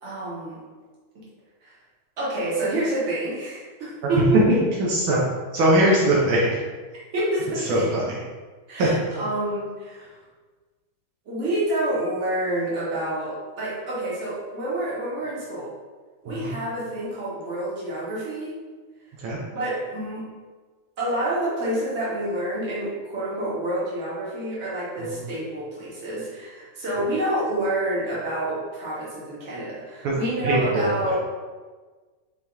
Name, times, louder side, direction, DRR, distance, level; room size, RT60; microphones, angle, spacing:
voice 1, 0.0-0.6 1.1-1.3 1.6-1.7 2.2-4.4 7.1-8.1 8.7-10.2 11.2-15.7 16.2-18.5 19.5-20.3 21.0-31.2, right 1 dB, 40° right, -8 dB, 1.4 m, -28 dB
voice 2, 5.5-6.4 7.7-8.0 8.8-8.9 16.3-16.5 19.2-19.4 25.1-25.2 30.4-31.2, right 1 dB, 75° right, -4 dB, 1.6 m, -21 dB
5.0 x 2.8 x 3.4 m, 1.4 s
omnidirectional pair, 2.4 m